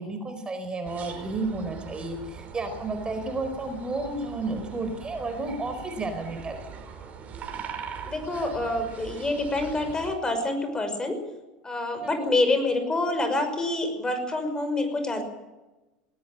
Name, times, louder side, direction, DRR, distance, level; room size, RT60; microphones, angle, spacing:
voice 1, 0.0-6.7 12.0-12.4, right 2 dB, 20° right, 7 dB, 4.4 m, -32 dB
sound 1, 0.8-10.2, right 6 dB, 40° right, 4.9 m, -41 dB
voice 2, 8.0-11.2 11.6-15.2, left 2 dB, 20° left, 7 dB, 5.9 m, -27 dB
19.0 x 18.0 x 8.9 m, 1.1 s
hypercardioid pair, 85°, 4 cm